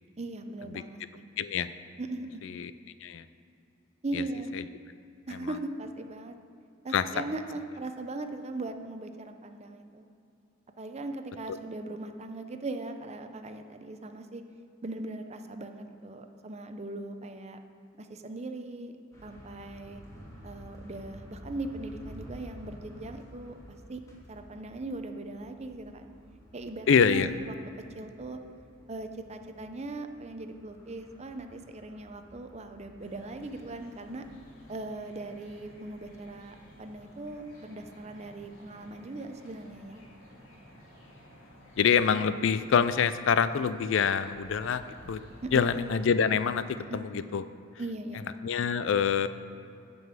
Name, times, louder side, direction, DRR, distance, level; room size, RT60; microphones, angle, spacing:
voice 1, 0.2-1.2 2.0-2.4 4.0-4.5 5.3-6.3 6.8-10.1 10.8-14.4 14.8-17.6 18.0-18.9 19.2-20.0 20.4-24.0 24.3-26.1 26.5-27.5 27.9-28.4 28.9-34.3 34.7-40.0 45.4-45.6 46.9-47.0 47.8-48.2, right 2 dB, 35° right, 7 dB, 0.6 m, -39 dB
voice 2, 1.4-1.7 2.4-2.7 3.0-3.2 4.1-4.2 5.3-5.5 6.9-7.0 26.9-27.3 41.8-45.2 45.5-47.4 48.4-49.3, left 6 dB, 70° left, 13 dB, 0.4 m, -26 dB
sound 1, 19.1-34.3, equal, 15° left, 1.8 m, -51 dB
sound 2, 33.0-46.6, equal, 90° left, 2.1 m, -53 dB
9.3 x 5.3 x 7.4 m, 2.6 s
head